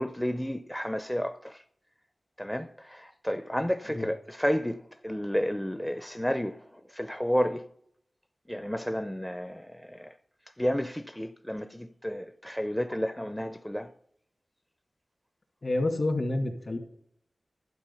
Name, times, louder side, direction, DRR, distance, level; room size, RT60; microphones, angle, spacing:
voice 1, 0.0-1.6 2.4-6.6 6.9-7.6 8.5-10.1 10.6-13.9, equal, 5° left, 0.5 m, -31 dB
voice 2, 15.6-16.8, left 2 dB, 55° left, 2.2 m, -28 dB
12.0 x 7.7 x 5.6 m
wide cardioid pair, 60°, 0 cm